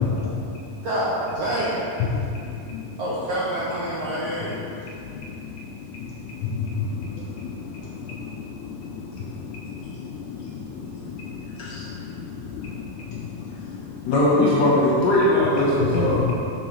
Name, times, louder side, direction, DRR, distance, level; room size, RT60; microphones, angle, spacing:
voice 1, 0.0-0.8 2.0-3.0 4.4-14.1 15.7-16.3, left 5 dB, 80° left, -2 dB, 1.8 m, -32 dB
voice 2, 0.8-1.9 3.0-4.6, right 1 dB, 70° right, -9 dB, 1.5 m, -27 dB
voice 3, 14.1-16.3, left 1 dB, 60° left, -6 dB, 2.0 m, -19 dB
6.0 x 4.7 x 5.5 m, 2.6 s
omnidirectional pair, 4.1 m